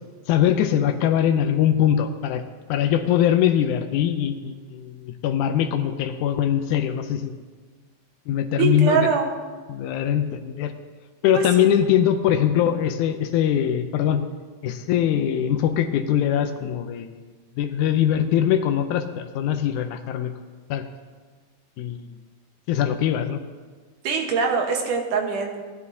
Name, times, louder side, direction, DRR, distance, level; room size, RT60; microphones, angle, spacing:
voice 1, 0.3-2.4 2.7-7.3 8.3-9.1 9.7-10.7 11.2-14.2 14.6-17.2 17.6-20.3 20.7-20.8 21.8-22.1 22.7-23.4, left 10 dB, 85° left, 6 dB, 1.8 m, -22 dB
voice 2, 8.6-9.3 11.3-11.7 24.0-25.6, right 5 dB, 70° right, 3 dB, 2.5 m, -23 dB
18.5 x 10.5 x 2.8 m, 1.5 s
omnidirectional pair, 4.2 m